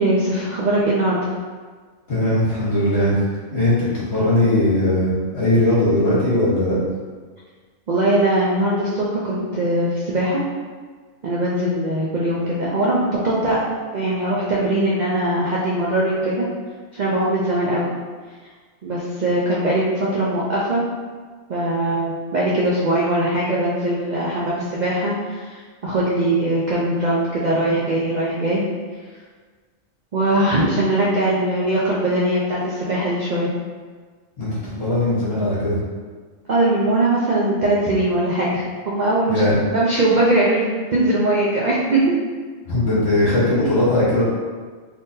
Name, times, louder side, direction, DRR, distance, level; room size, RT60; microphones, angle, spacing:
voice 1, 0.0-1.3 3.5-3.6 7.9-10.4 11.2-13.6 13.9-16.5 16.9-17.9 18.8-20.8 21.5-28.7 30.1-33.5 36.5-39.5 39.7-40.7 40.9-42.1, right 1 dB, 75° right, -6 dB, 0.4 m, -21 dB
voice 2, 2.1-3.2 3.5-6.8 34.4-34.5 34.8-35.8 39.3-39.6 42.7-44.2, left 1 dB, 55° left, -9 dB, 1.5 m, -19 dB
3.6 x 2.8 x 2.7 m, 1.5 s
omnidirectional pair, 1.4 m